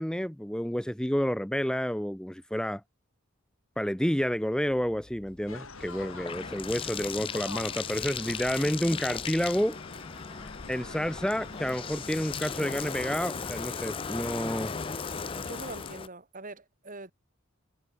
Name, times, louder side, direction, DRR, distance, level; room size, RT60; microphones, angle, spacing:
voice 1, 0.0-2.8 3.8-9.8 10.7-14.7, equal, 5° left, 0.9 m, -30 dB
Bathtub (filling or washing), 4.7-16.1, left 6 dB, 25° left, 0.4 m, -37 dB
sound 1, 5.5-15.9, left 3 dB, 90° left, 5.1 m, -46 dB
voice 2, 15.4-17.1, right 2 dB, 40° right, 3.1 m, -43 dB
head